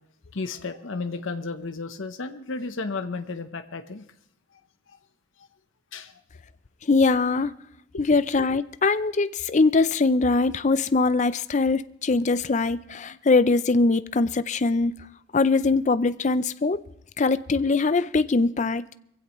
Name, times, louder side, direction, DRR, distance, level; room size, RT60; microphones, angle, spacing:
voice 1, 0.3-4.0 5.9-6.1 7.9-8.0, left 3 dB, 70° left, 0.9 m, -33 dB
voice 2, 6.9-7.5 8.0-14.9 15.3-16.8 17.2-18.9, left 3 dB, 35° left, 0.5 m, -22 dB
22.5 x 16.0 x 3.1 m
head